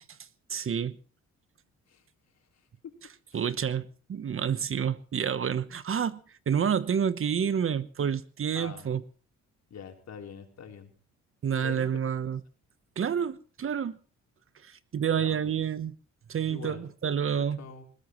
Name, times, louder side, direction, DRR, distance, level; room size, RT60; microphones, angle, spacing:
voice 1, 0.5-1.0 3.3-6.2 6.5-9.0 11.4-12.4 13.0-14.0 14.6-15.9 16.3-17.6, right 8 dB, 45° right, 1.1 m, -29 dB
voice 2, 8.5-8.9 9.7-10.9 11.6-12.0 15.1-15.6 16.5-16.8 17.4-17.8, left 7 dB, 60° left, 4.0 m, -44 dB
20.5 x 20.0 x 3.2 m
cardioid pair, 90°, 30 cm